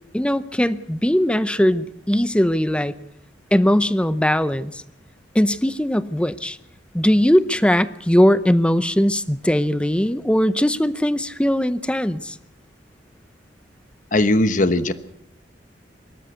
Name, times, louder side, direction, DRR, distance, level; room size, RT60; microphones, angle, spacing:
voice 1, 0.1-2.9 3.5-4.8 5.3-6.6 6.9-12.4, equal, 5° left, 14 dB, 0.7 m, -19 dB
voice 2, 14.1-14.9, left 1 dB, 45° left, 12 dB, 1.2 m, -18 dB
24.0 x 13.5 x 8.1 m, 0.79 s
head